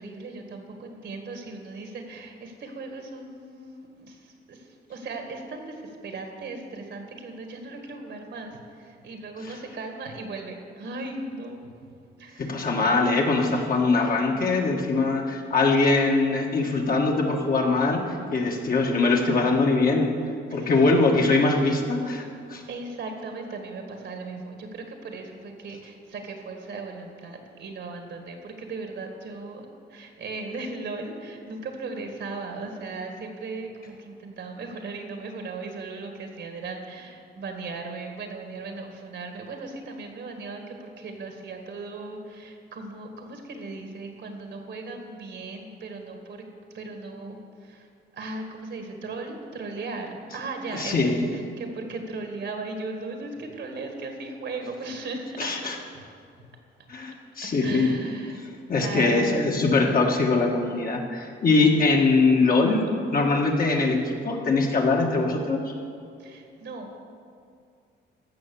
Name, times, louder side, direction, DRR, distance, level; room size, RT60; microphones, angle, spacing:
voice 1, 0.0-11.6 12.2-12.7 20.5-20.7 22.7-46.4 46.7-47.9 48.1-56.2 56.5-56.6 57.4-58.5 58.8-59.7 66.2-67.0, right 3 dB, 65° right, 4 dB, 1.8 m, -37 dB
voice 2, 12.4-18.0 18.3-20.1 20.5-22.2 22.5-22.6 50.7-51.3 55.4-55.7 56.9-57.9 58.7-62.9 63.1-65.7, left 3 dB, 45° left, 0 dB, 1.7 m, -22 dB
15.0 x 5.7 x 7.0 m, 2.3 s
cardioid pair, 90°, 20 cm